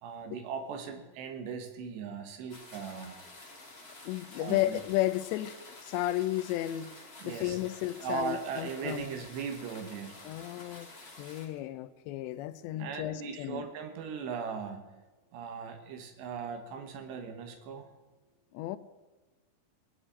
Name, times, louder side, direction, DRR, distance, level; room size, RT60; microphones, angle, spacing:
voice 1, 0.0-3.2 4.4-4.8 7.2-7.6 8.0-10.1 12.7-14.8 15.3-17.9, right 6 dB, 75° right, 3.4 m, -38 dB
sound 1, 2.5-11.5, left 2 dB, 20° left, 1.9 m, -50 dB
voice 2, 4.0-6.9 7.2-9.1 10.2-10.9 11.2-13.7 18.5-18.8, left 15 dB, 80° left, 2.7 m, -33 dB
19.5 x 6.7 x 8.7 m
omnidirectional pair, 5.2 m